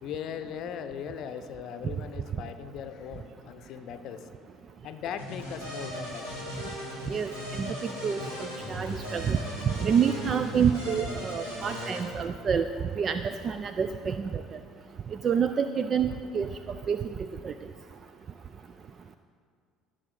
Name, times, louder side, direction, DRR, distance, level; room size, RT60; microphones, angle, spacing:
voice 1, 0.0-4.3 4.8-6.5, left 8 dB, 50° left, 9 dB, 0.6 m, -39 dB
sound 1, 5.2-12.0, equal, 75° right, 2.6 m, -37 dB
voice 2, 7.6-8.2 8.7-9.4 9.8-12.7 13.0-14.3 15.2-16.5 16.9-17.0 17.4-17.5, right 7 dB, 35° right, 10 dB, 0.3 m, -27 dB
16.5 x 6.8 x 3.8 m, 2.1 s
figure-of-eight pair, 60°, 0 cm